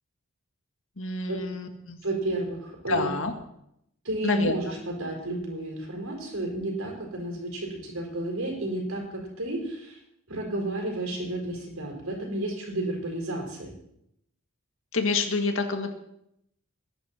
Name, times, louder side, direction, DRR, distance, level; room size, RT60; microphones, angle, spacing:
voice 1, 1.0-2.0 2.9-3.3 4.2-4.5 14.9-15.9, left 3 dB, 65° left, 5 dB, 1.9 m, -27 dB
voice 2, 2.0-3.1 4.0-10.0 10.3-13.7, right 1 dB, 75° right, 0 dB, 5.0 m, -32 dB
20.5 x 11.0 x 4.4 m, 0.77 s
head